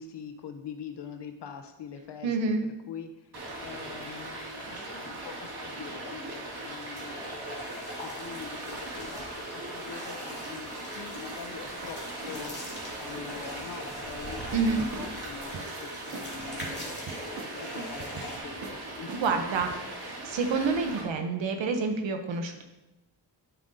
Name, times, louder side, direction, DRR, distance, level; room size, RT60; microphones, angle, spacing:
voice 1, 0.0-2.4 2.9-7.4 8.0-12.0 12.2-12.6 13.0-16.9 17.4-18.0 18.4-19.9, left 7 dB, 70° left, 6 dB, 0.7 m, -44 dB
voice 2, 2.2-2.6 14.5-14.8 19.2-19.7 20.2-22.6, right 4 dB, 85° right, 5 dB, 0.8 m, -28 dB
Stream, 3.3-21.0, right 2 dB, 60° right, 2.4 m, -39 dB
sound 1, 6.9-18.4, left 1 dB, 25° left, 2.4 m, -43 dB
sound 2, 14.5-16.3 16.6-17.6 18.0-18.3 18.6-18.8 19.1-19.7, right 6 dB, 45° right, 0.5 m, -43 dB
9.8 x 7.2 x 2.7 m, 0.99 s
wide cardioid pair, 100°, 44 cm